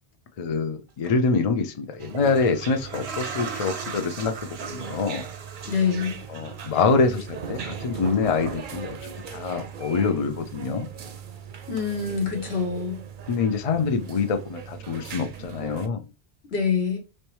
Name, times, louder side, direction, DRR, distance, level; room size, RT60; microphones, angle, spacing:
voice 1, 0.4-5.2 6.3-9.0 9.3-10.9 13.3-16.0, left 4 dB, 50° left, 0.5 m, -25 dB
sound 1, 0.9-1.1 1.9-10.0 10.3-11.3 11.8-11.9, right 5 dB, 90° right, 1.1 m, -40 dB
sound 2, 2.0-15.9, right 7 dB, 60° right, 0.7 m, -39 dB
voice 2, 5.6-6.2 11.7-13.0 16.5-17.0, left 6 dB, 75° left, 1.3 m, -25 dB
3.2 x 3.1 x 3.0 m
omnidirectional pair, 1.1 m